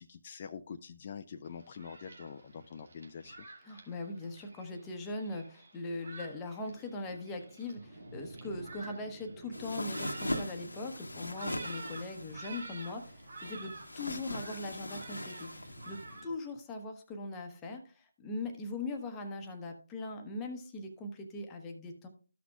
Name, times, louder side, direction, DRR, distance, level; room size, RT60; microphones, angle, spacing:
voice 1, 0.0-3.4, left 6 dB, 35° left, 6 dB, 0.4 m, -45 dB
Thunderstorm, 1.5-16.3, right 2 dB, 60° right, 2.6 m, -49 dB
voice 2, 3.6-22.1, left 2 dB, 10° left, 4 dB, 1.0 m, -41 dB
sound 1, 9.5-16.2, left 1 dB, 80° left, 1.1 m, -41 dB
14.0 x 6.0 x 2.3 m, 0.38 s
figure-of-eight pair, 160°, 0 cm